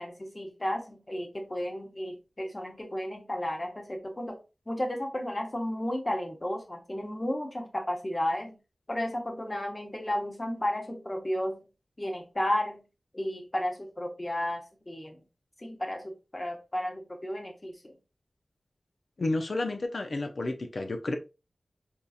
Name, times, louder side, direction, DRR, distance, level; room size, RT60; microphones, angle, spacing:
voice 1, 0.0-4.4 4.7-8.6 8.9-11.6 12.0-12.8 13.1-15.2 15.6-17.9, left 1 dB, 30° left, 1.0 m, -33 dB
voice 2, 19.2-21.2, left 2 dB, 65° left, 0.5 m, -31 dB
3.8 x 2.8 x 2.4 m
cardioid pair, 45°, 0 cm